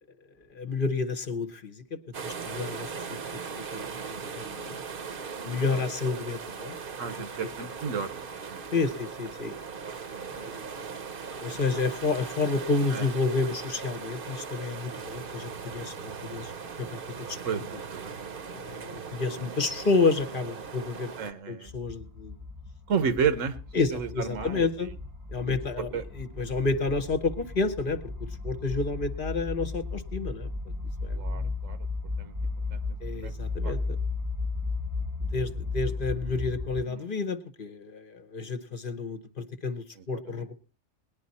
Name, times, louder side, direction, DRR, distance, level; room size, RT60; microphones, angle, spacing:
voice 1, 0.5-3.4 3.7-4.8 5.4-6.8 8.7-9.6 10.4-10.7 11.4-16.5 16.8-17.0 17.3-17.4 18.5-21.1 21.5-22.3 23.7-24.9 25.3-28.0 28.4-30.5 31.0-31.5 33.0-34.0 35.3-40.5, left 3 dB, 45° left, 8 dB, 1.0 m, -30 dB
sound 1, 2.1-21.3, right 5 dB, 50° right, 0.9 m, -39 dB
voice 2, 7.0-8.8 10.2-10.5 12.9-13.1 17.4-18.1 21.2-21.7 22.9-23.6 23.9-24.9 25.4-26.0 31.1-31.9 32.2-32.3 32.7-33.0 33.2-33.3 33.6-33.7 36.9-37.1 40.0-40.4, right 6 dB, 80° right, 11 dB, 1.4 m, -33 dB
sound 2, 14.9-20.7, right 7 dB, 65° right, 1.2 m, -49 dB
sound 3, 21.7-36.8, left 3 dB, 15° right, 0.8 m, -35 dB
19.0 x 10.5 x 4.1 m, 0.35 s
omnidirectional pair, 1.3 m